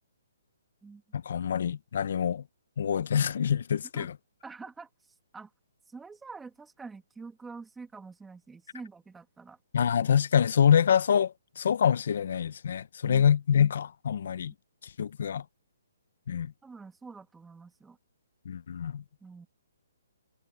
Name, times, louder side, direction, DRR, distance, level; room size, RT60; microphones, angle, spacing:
voice 1, 1.1-2.4 2.8-4.1 9.7-14.5 15.0-15.4 16.3-16.5 18.5-19.0, left 8 dB, 55° left, 0.8 m, -26 dB
voice 2, 4.4-4.9 5.3-5.5 5.9-9.6 16.6-18.0 19.2-19.5, right 4 dB, 5° right, 2.5 m, -46 dB
hypercardioid pair, 170°, 0 cm